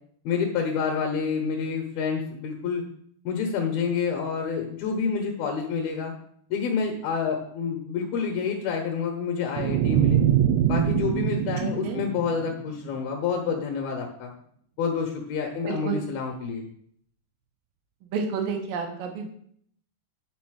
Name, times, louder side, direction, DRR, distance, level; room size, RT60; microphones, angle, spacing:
voice 1, 0.2-2.8 3.2-6.1 6.5-10.2 10.7-14.3 14.8-16.7, left 6 dB, 70° left, 1 dB, 2.7 m, -28 dB
sound 1, 9.6-12.8, right 10 dB, 90° right, 2.7 m, -24 dB
voice 2, 11.6-12.0 15.7-16.0 18.0-19.4, right 5 dB, 65° right, 3 dB, 2.7 m, -30 dB
9.7 x 4.2 x 6.3 m, 0.65 s
omnidirectional pair, 4.6 m